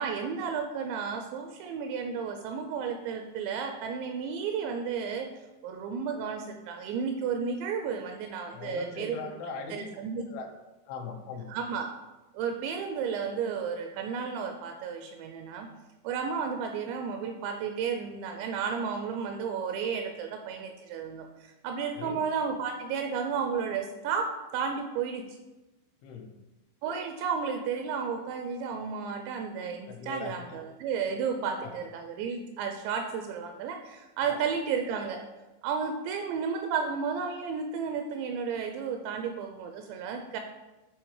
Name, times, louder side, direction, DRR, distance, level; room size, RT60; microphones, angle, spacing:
voice 1, 0.0-5.3 5.6-9.2 9.7-10.3 11.5-12.0 12.3-15.7 16.0-25.2 26.8-35.2 35.6-40.4, right 6 dB, 85° right, 5 dB, 2.6 m, -33 dB
voice 2, 8.5-9.9 10.3-10.5 10.9-11.4 21.9-22.2 26.0-26.3 29.9-30.6 34.3-34.4, left 4 dB, 80° left, 3 dB, 3.2 m, -39 dB
10.5 x 3.6 x 4.7 m, 1.1 s
omnidirectional pair, 5.4 m